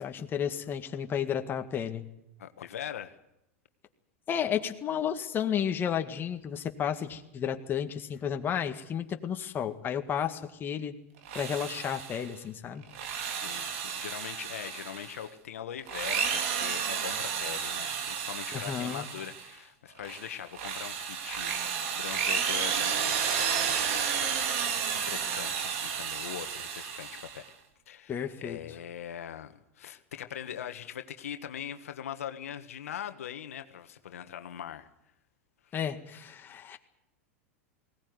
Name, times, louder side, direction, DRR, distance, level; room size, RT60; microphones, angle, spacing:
voice 1, 0.0-2.1 4.3-11.0 11.3-12.8 18.5-19.1 28.1-28.6 35.7-36.8, left 8 dB, 30° left, 6 dB, 1.9 m, -32 dB
voice 2, 2.4-3.2 13.3-24.4 24.9-27.5 27.9-34.9 35.6-35.8, left 10 dB, 85° left, 9 dB, 1.5 m, -42 dB
Drill, 11.2-12.3 12.8-15.2 15.8-19.5 20.0-27.5, right 7 dB, 65° right, 3.3 m, -32 dB
19.5 x 18.0 x 9.6 m, 0.83 s
hypercardioid pair, 120°, 8 cm